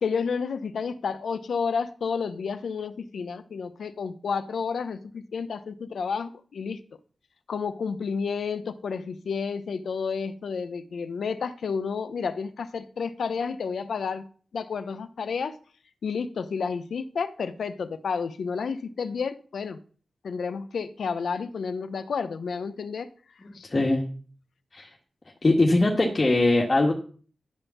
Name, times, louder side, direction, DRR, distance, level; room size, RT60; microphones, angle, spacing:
voice 1, 0.0-6.8 7.5-14.2 14.5-15.6 16.0-19.8 20.2-23.1 23.5-23.7, left 5 dB, 90° left, 0.8 m, -31 dB
voice 2, 23.4-24.0 24.7-24.9 25.4-26.9, left 2 dB, 35° left, 1.8 m, -21 dB
11.0 x 5.4 x 7.1 m
wide cardioid pair, 115°, 0 cm